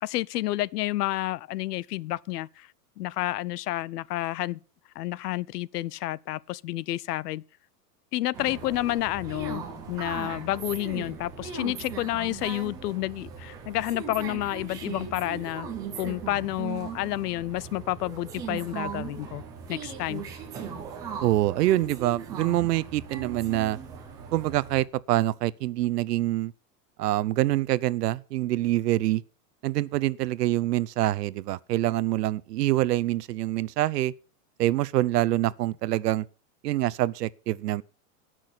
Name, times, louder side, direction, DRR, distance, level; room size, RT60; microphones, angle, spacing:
voice 1, 0.0-2.7 3.0-4.6 5.0-7.4 8.1-15.7 16.0-19.4 19.7-20.2, left 16 dB, 80° left, 0.6 m, -30 dB
sound 1, 8.3-24.8, right 6 dB, 10° right, 0.5 m, -39 dB
voice 2, 21.2-23.8 24.3-26.5 27.0-29.2 29.6-34.1 34.6-36.2 36.6-37.8, right 15 dB, 80° right, 0.7 m, -25 dB
17.0 x 6.2 x 6.0 m
supercardioid pair, 180°, 47 cm